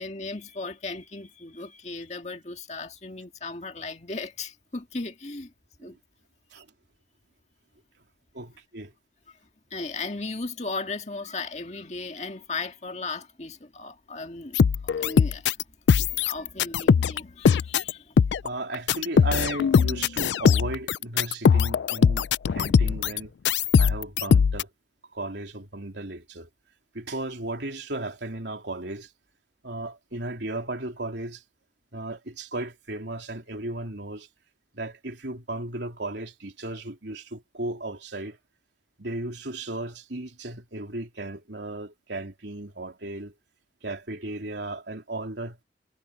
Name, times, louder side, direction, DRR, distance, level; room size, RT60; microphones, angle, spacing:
voice 1, 0.0-5.5 5.8-6.0 9.3-9.4 9.7-15.6 15.9-18.4, left 3 dB, 40° left, 1.9 m, -36 dB
voice 2, 8.3-8.9 18.4-23.3 23.8-24.7 25.1-26.5 26.9-29.1 29.6-31.4 31.9-34.3 34.7-38.4 39.0-43.3 43.8-45.6, right 2 dB, 80° right, 3.3 m, -35 dB
sound 1, 14.5-15.6 15.9-17.2 17.5-17.9 18.2-18.5 18.7-23.2 23.4-24.6, left 6 dB, 80° left, 0.3 m, -20 dB
head